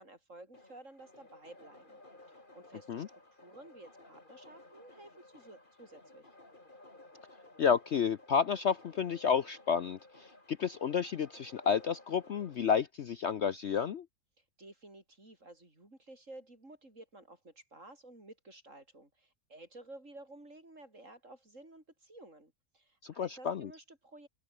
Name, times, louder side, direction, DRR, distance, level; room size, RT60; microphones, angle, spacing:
voice 1, 0.0-2.0 2.3-6.3 14.4-24.3, right 2 dB, 50° right, 6.8 m, -53 dB
sound 1, 0.5-12.6, left 2 dB, 30° left, 4.0 m, -57 dB
voice 2, 7.6-10.0 10.5-14.0 23.0-23.7, left 7 dB, 55° left, 0.9 m, -30 dB
open air
omnidirectional pair, 1.7 m